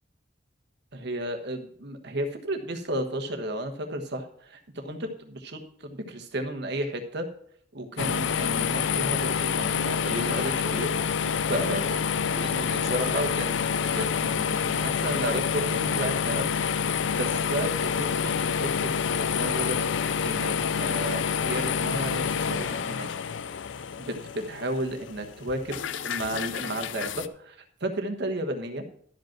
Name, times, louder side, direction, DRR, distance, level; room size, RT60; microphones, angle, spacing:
voice 1, 0.9-7.3 7.7-13.6 13.9-16.5 16.8-23.1 24.0-28.8, right 1 dB, 60° right, 5 dB, 1.3 m, -33 dB
sound 1, 8.0-27.3, left 7 dB, 65° left, 0.4 m, -28 dB
12.5 x 5.3 x 5.8 m, 0.64 s
head